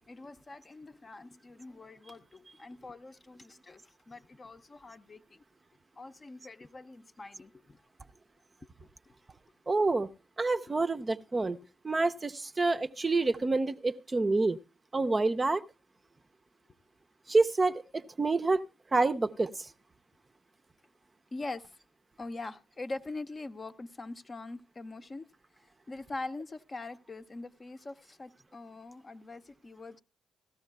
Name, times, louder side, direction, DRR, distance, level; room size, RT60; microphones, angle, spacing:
voice 1, 0.1-3.8 4.1-5.4 6.0-7.8 21.3-21.6 22.2-25.3 25.9-30.0, left 2 dB, 35° left, 0.7 m, -43 dB
voice 2, 9.7-10.1 10.4-11.6 11.8-14.6 14.9-15.6 17.3-18.6 18.9-19.7, right 3 dB, 30° right, 0.6 m, -27 dB
17.0 x 13.5 x 2.3 m
figure-of-eight pair, 40°, 0 cm